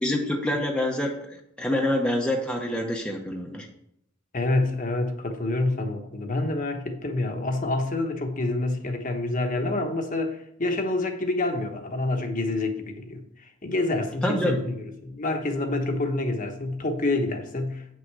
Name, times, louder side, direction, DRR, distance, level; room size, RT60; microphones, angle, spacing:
voice 1, 0.0-3.7 14.2-14.6, left 1 dB, 5° left, 0.9 m, -26 dB
voice 2, 4.3-17.9, left 2 dB, 40° left, 1.2 m, -27 dB
8.7 x 6.3 x 4.7 m
head